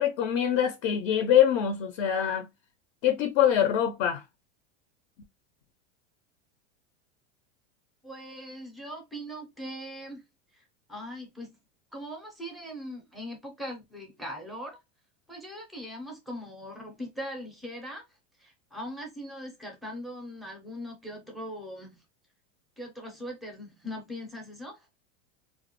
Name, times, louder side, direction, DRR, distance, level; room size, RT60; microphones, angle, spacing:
voice 1, 0.0-2.5 3.0-4.2, left 10 dB, 55° left, 0.5 m, -24 dB
voice 2, 8.0-10.2 10.5-10.6 10.9-11.5 11.9-14.8 15.3-18.0 18.4-22.0 22.8-24.9, equal, ahead, 0.4 m, -40 dB
2.3 x 2.1 x 2.7 m
supercardioid pair, 135°, 37 cm